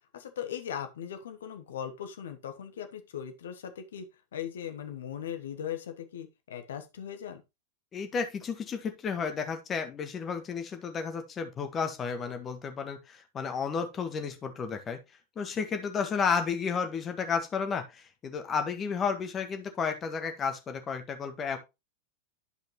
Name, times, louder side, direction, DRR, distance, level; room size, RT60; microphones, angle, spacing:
voice 1, 0.1-4.1 4.3-7.4, left 9 dB, 60° left, 1.2 m, -39 dB
voice 2, 7.9-15.0 15.4-21.6, left 6 dB, 25° left, 1.6 m, -32 dB
11.5 x 5.1 x 3.1 m
figure-of-eight pair, 90°, 0 cm